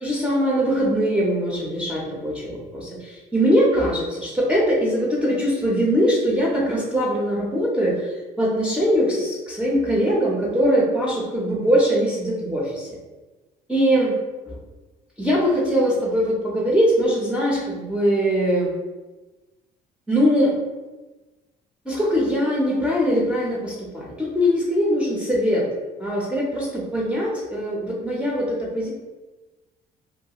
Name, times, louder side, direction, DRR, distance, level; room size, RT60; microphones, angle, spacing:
voice 1, 0.0-12.9 13.7-14.1 14.5-14.6 15.2-18.7 20.1-20.5 21.9-25.6 26.0-28.9, equal, 5° right, -5 dB, 0.5 m, -21 dB
2.3 x 2.3 x 2.8 m, 1.2 s
cardioid pair, 110°, 17 cm